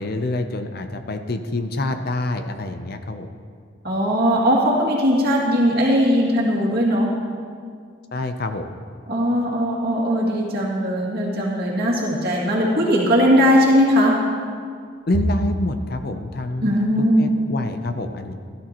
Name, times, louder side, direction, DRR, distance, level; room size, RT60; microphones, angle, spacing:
voice 1, 0.0-3.3 8.1-8.8 15.1-16.7 17.2-18.3, left 2 dB, 50° left, 8 dB, 0.6 m, -27 dB
voice 2, 3.8-7.2 9.1-14.2 16.6-17.2, equal, 50° right, -4 dB, 2.5 m, -19 dB
16.5 x 12.5 x 3.0 m, 2.1 s
head